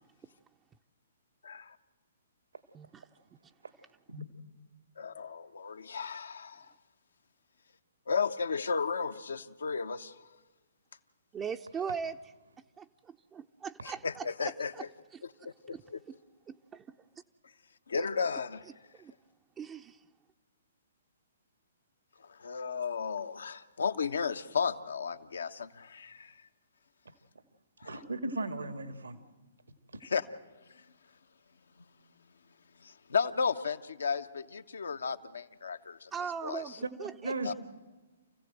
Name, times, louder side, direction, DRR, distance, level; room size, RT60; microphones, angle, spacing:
voice 1, 1.4-1.7 5.0-6.7 8.1-10.1 13.8-14.9 15.4-16.0 17.9-18.6 22.2-26.4 27.8-28.0 30.0-30.3 30.7-30.8 31.8-31.9 32.8-36.1 36.4-36.6 37.4-37.5, left 5 dB, 70° left, 10 dB, 1.1 m, -34 dB
voice 2, 2.7-3.1 11.3-12.2 12.8-14.8 15.1-15.8 16.5-17.0 17.9-18.1 18.3-18.4 18.9-19.1 19.6-20.1 36.1-37.5, right 6 dB, 20° right, 4 dB, 0.7 m, -40 dB
voice 3, 27.8-29.2 29.9-30.0 37.2-37.5, right 2 dB, 80° right, 9 dB, 2.1 m, -36 dB
28.5 x 16.0 x 7.8 m, 1.3 s
figure-of-eight pair, 120°, 0 cm